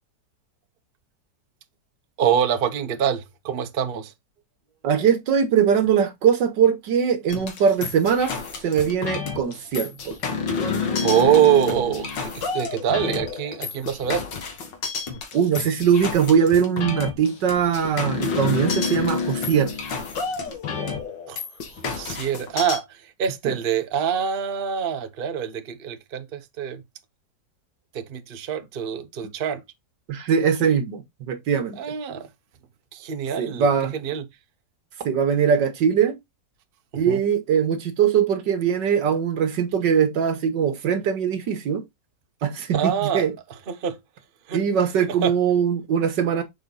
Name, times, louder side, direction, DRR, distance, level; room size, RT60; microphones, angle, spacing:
voice 1, 2.2-4.1 11.0-14.3 21.3-21.4 21.7-26.8 27.9-29.6 31.8-32.3 32.9-34.3 36.9-37.2 42.7-43.3 43.7-44.0 44.5-44.6 45.1-45.3, right 9 dB, 40° right, 0.9 m, -25 dB
voice 2, 4.8-8.4 8.6-10.2 15.3-19.7 23.4-23.6 30.1-31.8 33.4-33.9 35.0-36.2 37.0-41.8 42.4-43.3 44.5-46.4, right 7 dB, 80° right, 1.8 m, -21 dB
sound 1, 7.3-22.8, left 5 dB, 80° left, 2.1 m, -29 dB
6.8 x 4.1 x 3.9 m
omnidirectional pair, 1.9 m